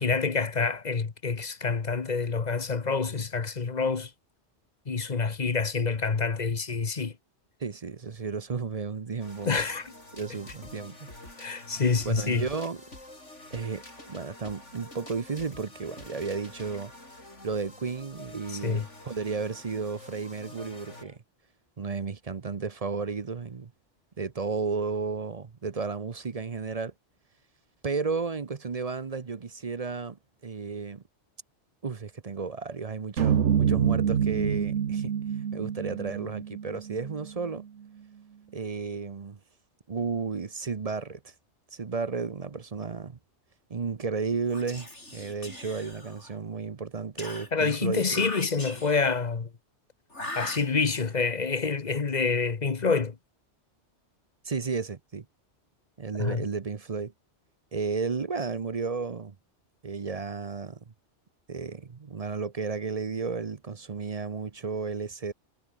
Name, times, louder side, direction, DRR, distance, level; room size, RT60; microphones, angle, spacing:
voice 1, 0.0-4.1 4.9-7.1 9.4-9.9 11.4-12.4 18.5-18.8 47.5-49.5 50.3-53.2 56.2-56.4, left 4 dB, 40° left, 1.2 m, -27 dB
voice 2, 7.6-9.5 10.1-11.1 12.0-12.8 13.5-16.9 17.4-21.2 21.8-23.7 24.2-26.9 27.8-30.2 30.4-31.0 31.8-35.1 35.5-37.6 38.5-39.4 39.9-41.3 41.7-43.2 43.7-48.2 54.4-55.3 56.0-57.1 57.7-59.3 59.8-60.8 61.5-65.3, right 4 dB, 35° right, 0.8 m, -33 dB
sound 1, 9.2-21.2, left 1 dB, 90° left, 7.6 m, -47 dB
sound 2, 33.2-37.5, right 8 dB, 80° right, 1.4 m, -27 dB
Whispering, 44.4-46.4 47.2-49.2 50.1-51.1, left 1 dB, 75° left, 8.2 m, -41 dB
omnidirectional pair, 1.2 m